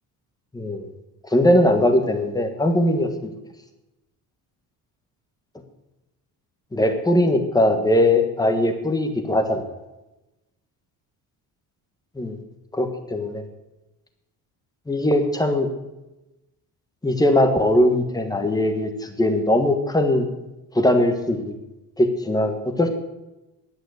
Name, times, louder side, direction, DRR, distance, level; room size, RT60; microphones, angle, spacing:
voice 1, 0.5-0.9 1.2-3.3 6.7-9.6 12.1-12.4 12.7-13.4 14.9-15.7 17.0-20.3 20.7-21.4 22.0-22.9, left 1 dB, 10° left, 6 dB, 1.4 m, -20 dB
11.0 x 9.5 x 7.9 m, 0.98 s
cardioid pair, 165°, 39 cm